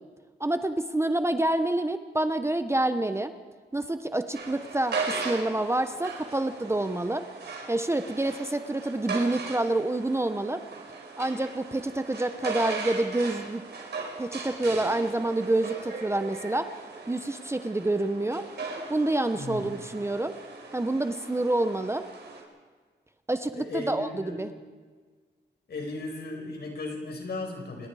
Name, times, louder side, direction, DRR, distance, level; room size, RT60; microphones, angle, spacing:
voice 1, 0.4-3.3 3.7-7.3 7.7-10.6 11.2-13.6 14.2-16.7 17.1-18.5 18.9-20.3 20.7-22.1 23.3-24.5, right 2 dB, 15° right, 9 dB, 0.8 m, -27 dB
sound 1, 4.3-22.4, right 4 dB, 70° right, 4.8 m, -38 dB
voice 2, 19.3-19.6 23.5-24.4 25.7-27.9, left 2 dB, 60° left, 2 dB, 5.3 m, -36 dB
28.5 x 20.5 x 4.9 m, 1.5 s
wide cardioid pair, 125°, 18 cm